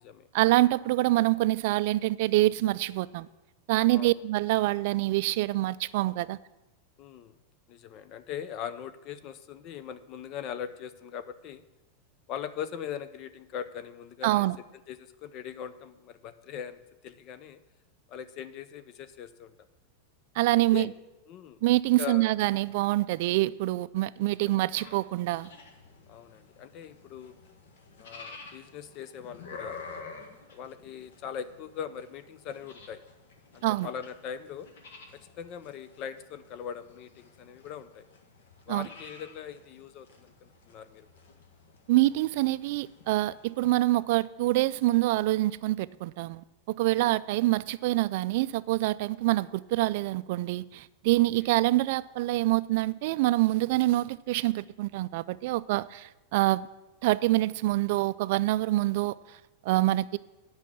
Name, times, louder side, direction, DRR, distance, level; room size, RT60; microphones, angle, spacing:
voice 1, 0.3-3.3 3.7-6.4 14.2-14.6 20.4-20.9 21.6-25.5 33.6-33.9 38.7-38.9 41.9-56.7 57.0-59.2 59.6-60.2, right 17 dB, 60° right, 0.3 m, -26 dB
voice 2, 7.0-7.3 7.7-11.6 12.3-14.5 14.9-17.6 18.1-19.5 20.7-20.9 21.3-21.6 22.0-22.3 24.4-24.6 26.1-27.4 28.0-29.8 30.5-33.0 33.5-34.7 35.1-38.0 38.7-41.1 47.0-47.2 51.1-51.5, left 8 dB, 40° left, 0.5 m, -40 dB
sound 1, 24.8-43.8, left 4 dB, 80° left, 1.5 m, -50 dB
8.4 x 5.6 x 7.4 m
supercardioid pair, 150°, 0 cm